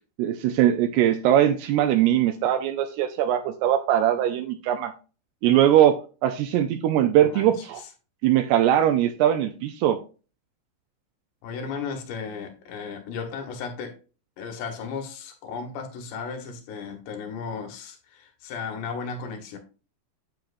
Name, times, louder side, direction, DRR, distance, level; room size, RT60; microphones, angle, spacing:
voice 1, 0.2-4.9 5.4-7.8 8.2-10.0, right 11 dB, 80° right, 2.4 m, -21 dB
voice 2, 7.2-7.7 11.4-14.0 14.4-19.6, left 5 dB, 75° left, 3.5 m, -35 dB
9.0 x 7.6 x 2.6 m
omnidirectional pair, 5.1 m